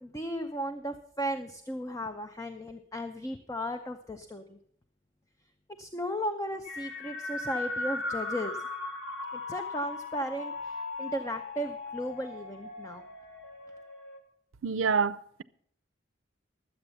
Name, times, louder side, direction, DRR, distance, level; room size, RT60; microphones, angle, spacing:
voice 1, 0.0-4.6 5.8-8.6 9.3-13.0, equal, 15° left, 0.6 m, -35 dB
sound 1, 6.6-14.2, left 2 dB, 85° left, 3.1 m, -38 dB
voice 2, 14.6-15.4, right 5 dB, 80° right, 0.5 m, -27 dB
12.5 x 8.0 x 6.9 m
head